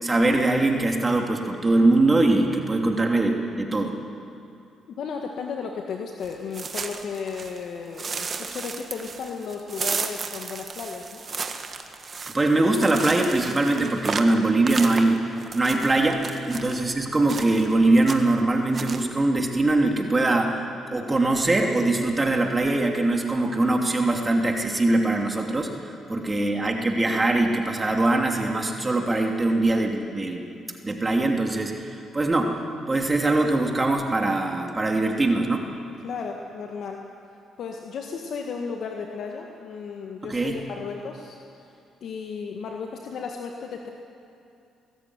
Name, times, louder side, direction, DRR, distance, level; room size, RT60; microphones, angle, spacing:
voice 1, 0.0-3.9 12.3-15.2 15.5-20.6 20.9-30.5 30.8-31.8 32.1-32.6 32.9-35.6 40.2-40.6, right 2 dB, 25° right, 2 dB, 2.9 m, -22 dB
voice 2, 4.9-11.2 16.5-16.8 26.1-26.5 36.0-37.0 37.6-41.8 42.0-43.9, left 5 dB, 65° left, 2 dB, 1.8 m, -34 dB
sound 1, 6.2-7.6 8.0-16.8 17.3-17.7 18.0-18.4 18.7-19.0, right 5 dB, 45° right, 1.7 m, -33 dB
22.5 x 13.5 x 9.8 m, 2.6 s
supercardioid pair, 70°, 0 cm